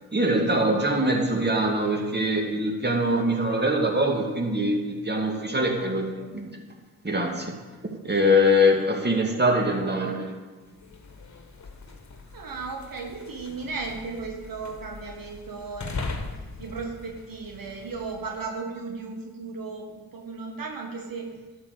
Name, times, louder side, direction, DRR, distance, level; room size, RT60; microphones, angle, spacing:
voice 1, 0.1-6.6 7.0-7.6 8.0-10.4, equal, 25° right, 2 dB, 2.3 m, -23 dB
voice 2, 5.4-5.9 6.1-6.5 12.3-16.2 16.6-21.3, right 4 dB, 60° right, 1 dB, 1.6 m, -36 dB
sound 1, 10.7-18.5, left 3 dB, 45° left, 1.5 m, -40 dB
11.0 x 4.8 x 8.0 m, 1.3 s
supercardioid pair, 40°, 38 cm